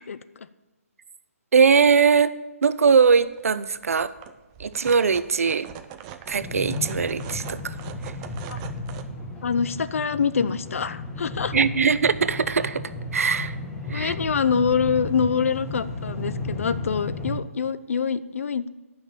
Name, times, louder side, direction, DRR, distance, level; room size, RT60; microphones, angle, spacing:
voice 1, 1.5-2.3 2.6-4.1 4.6-5.7 6.3-7.7 11.5-13.6 13.9-14.1, right 5 dB, 70° right, 15 dB, 0.7 m, -21 dB
sound 1, 3.2-3.4 3.7-9.0, right 9 dB, 20° right, 0.6 m, -42 dB
sound 2, 6.4-17.4, left 2 dB, 10° left, 1.2 m, -34 dB
voice 2, 9.4-11.5 13.9-18.7, left 6 dB, 65° left, 14 dB, 0.6 m, -25 dB
10.0 x 6.0 x 8.6 m, 1.1 s
hypercardioid pair, 150°, 8 cm